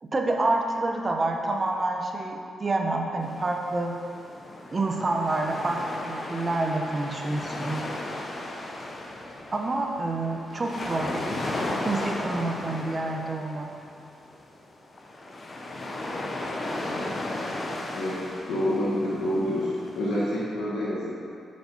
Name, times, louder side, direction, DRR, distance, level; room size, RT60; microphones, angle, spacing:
voice 1, 0.0-4.0 4.7-7.8 9.5-11.2 11.8-13.7, right 2 dB, 35° right, 1 dB, 0.9 m, -28 dB
sound 1, 3.2-20.4, left 1 dB, 40° left, 0.9 m, -35 dB
voice 2, 18.5-21.1, left 1 dB, 85° left, -8 dB, 1.3 m, -27 dB
5.7 x 5.2 x 5.3 m, 2.4 s
cardioid pair, 75°, 0 cm